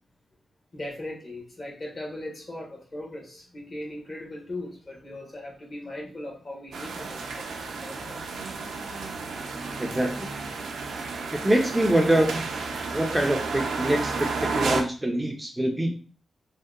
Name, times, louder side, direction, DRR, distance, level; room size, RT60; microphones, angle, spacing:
voice 1, 0.7-8.4, left 1 dB, 40° left, -1 dB, 0.9 m, -39 dB
sound 1, 6.7-14.8, right 4 dB, 90° right, 0.4 m, -32 dB
voice 2, 9.8-10.3 11.3-12.5 12.9-16.0, right 1 dB, 15° right, 2 dB, 0.4 m, -24 dB
2.7 x 2.1 x 2.3 m, 0.38 s
cardioid pair, 85°, 0 cm